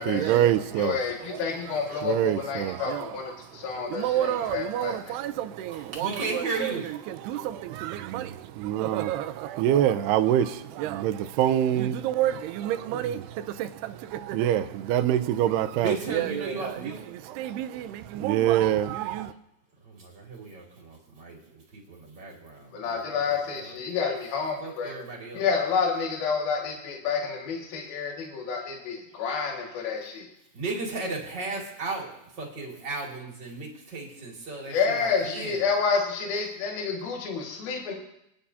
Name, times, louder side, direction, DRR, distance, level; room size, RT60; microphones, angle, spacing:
voice 1, 0.0-19.3, right 11 dB, 80° right, 10 dB, 2.6 m, -27 dB
voice 2, 0.8-5.2 22.7-24.9 25.3-30.3 34.7-37.9, left 5 dB, 65° left, -1 dB, 3.6 m, -29 dB
voice 3, 5.7-6.9 15.8-17.0 19.8-23.2 23.5-23.8 24.6-25.5 29.1-29.2 30.5-35.6, right 3 dB, 30° right, -2 dB, 2.3 m, -35 dB
28.0 x 10.0 x 2.8 m, 0.80 s
omnidirectional pair, 4.9 m